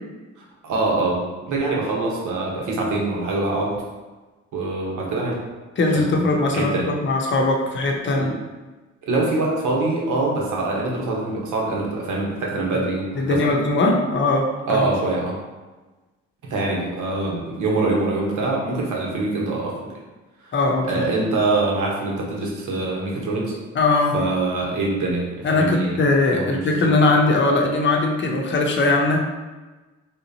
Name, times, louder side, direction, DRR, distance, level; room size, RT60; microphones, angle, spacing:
voice 1, 0.6-3.7 4.5-5.4 5.9-6.9 8.1-8.3 9.0-13.5 14.7-15.4 16.5-19.8 20.4-20.5 20.8-23.5 24.1-26.0 26.3-26.9, right 2 dB, 75° right, -2 dB, 1.0 m, -24 dB
voice 2, 5.8-8.3 13.2-14.9 20.5-21.1 23.7-24.1 25.4-29.3, left 2 dB, 40° left, 1 dB, 0.7 m, -20 dB
3.7 x 2.9 x 2.7 m, 1.2 s
cardioid pair, 90°, 30 cm